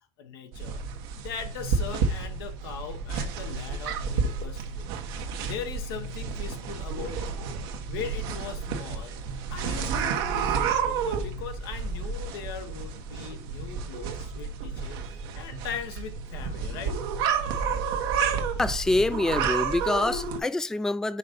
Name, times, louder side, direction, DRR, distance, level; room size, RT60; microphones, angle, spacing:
voice 1, 0.2-0.8 1.2-4.9 5.5-7.4 7.9-9.2 9.5-17.0, left 7 dB, 90° left, 1.2 m, -40 dB
sound 1, 0.5-20.4, right 6 dB, 85° right, 1.2 m, -31 dB
voice 2, 18.6-21.2, left 2 dB, 5° left, 0.3 m, -26 dB
5.8 x 3.8 x 5.1 m
supercardioid pair, 115°, 12 cm